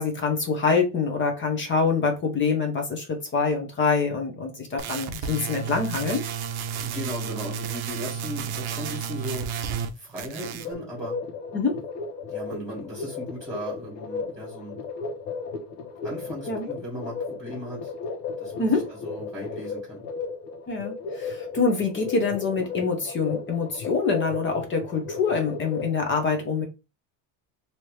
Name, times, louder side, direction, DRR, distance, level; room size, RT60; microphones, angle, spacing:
voice 1, 0.0-6.2 11.5-11.8 16.5-16.7 18.6-18.9 20.7-26.7, left 4 dB, 25° left, 0.7 m, -25 dB
sound 1, 4.8-9.9 10.2-10.7, right 7 dB, 55° right, 0.7 m, -32 dB
voice 2, 6.8-9.5 10.0-11.2 12.3-14.8 16.0-17.9 18.4-20.0, equal, 5° right, 1.6 m, -37 dB
sound 2, 10.6-25.9, left 4 dB, 85° left, 1.1 m, -35 dB
3.2 x 2.8 x 3.1 m
cardioid pair, 150°, 48 cm